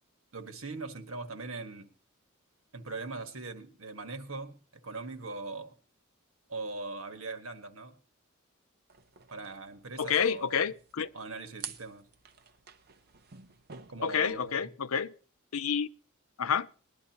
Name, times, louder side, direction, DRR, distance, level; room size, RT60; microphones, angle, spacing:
voice 1, 0.3-1.9 2.7-5.7 6.5-8.0 9.3-10.7 11.1-12.1 13.9-14.7, right 3 dB, 70° right, 1.5 m, -41 dB
sound 1, 8.9-14.5, right 7 dB, 50° right, 0.8 m, -50 dB
voice 2, 10.0-11.1 14.0-15.1 15.5-15.9 16.4-16.7, left 7 dB, 75° left, 0.6 m, -29 dB
20.0 x 11.0 x 2.9 m
head